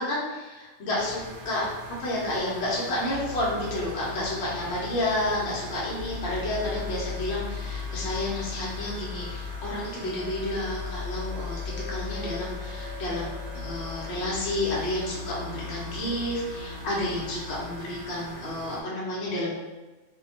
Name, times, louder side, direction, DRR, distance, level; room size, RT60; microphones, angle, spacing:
voice 1, 0.0-1.7 2.0-11.6 11.9-19.6, left 1 dB, 50° left, -6 dB, 0.9 m, -30 dB
sound 1, 1.0-18.8, right 1 dB, 80° right, 1.1 m, -43 dB
sound 2, 3.1-17.8, left 5 dB, 45° right, 1.0 m, -37 dB
2.7 x 2.3 x 2.7 m, 1.2 s
omnidirectional pair, 1.7 m